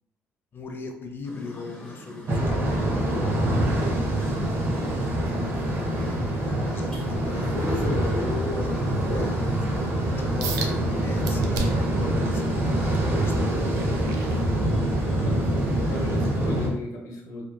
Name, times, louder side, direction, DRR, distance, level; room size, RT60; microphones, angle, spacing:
voice 1, 0.5-4.1 5.0-13.7, left 3 dB, 40° left, 4 dB, 0.5 m, -38 dB
sound 1, 1.2-16.3, equal, 15° left, 1.1 m, -42 dB
sound 2, 2.3-16.7, right 1 dB, 45° right, 0.7 m, -25 dB
sound 3, 10.4-10.7 11.2-11.9 12.4-15.0 15.5-15.7 16.3-16.4, right 4 dB, 85° right, 0.4 m, -35 dB
voice 2, 15.2-17.4, left 2 dB, 75° left, 0 dB, 0.7 m, -36 dB
2.9 x 2.2 x 2.2 m, 0.81 s
supercardioid pair, 75°, 6 cm